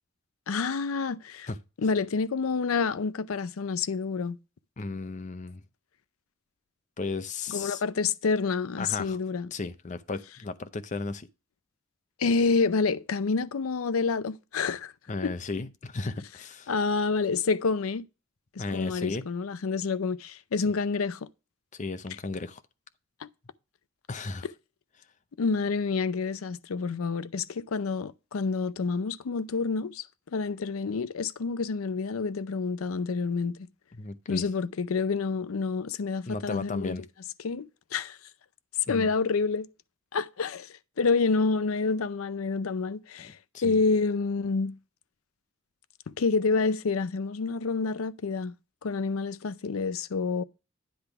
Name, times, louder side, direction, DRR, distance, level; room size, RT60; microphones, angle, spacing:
voice 1, 0.5-1.5 1.8-4.4 7.5-9.5 12.2-14.9 15.2-15.3 16.7-18.0 18.6-21.2 23.2-23.3 25.4-30.1 30.3-33.6 34.3-37.0 37.4-38.2 38.9-39.7 40.1-44.8 46.1-48.6 48.8-50.4, left 4 dB, 90° left, 0.5 m, -28 dB
voice 2, 4.8-5.6 7.0-7.8 8.8-9.2 9.5-11.3 15.1-16.7 18.6-19.3 21.7-22.6 24.1-24.5 33.9-34.4 36.3-37.0 38.9-39.1 43.5-43.8, left 3 dB, 35° left, 0.6 m, -35 dB
10.0 x 3.5 x 5.7 m
head